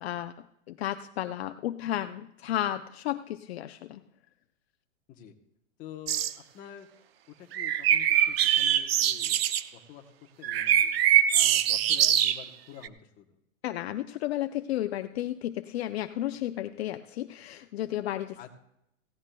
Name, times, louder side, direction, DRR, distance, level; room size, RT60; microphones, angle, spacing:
voice 1, 0.0-4.0 13.6-18.5, left 13 dB, 55° left, 8 dB, 0.5 m, -33 dB
voice 2, 5.8-6.2 6.5-6.9 7.3-10.1 10.4-10.9 11.3-13.3 18.4-18.5, left 10 dB, 20° left, 3 dB, 0.9 m, -47 dB
sound 1, 6.1-6.3 7.5-9.6 10.4-12.5 12.8-12.9, right 10 dB, 50° right, 0.6 m, -23 dB
17.0 x 16.0 x 2.2 m, 0.80 s
hypercardioid pair, 155°, 39 cm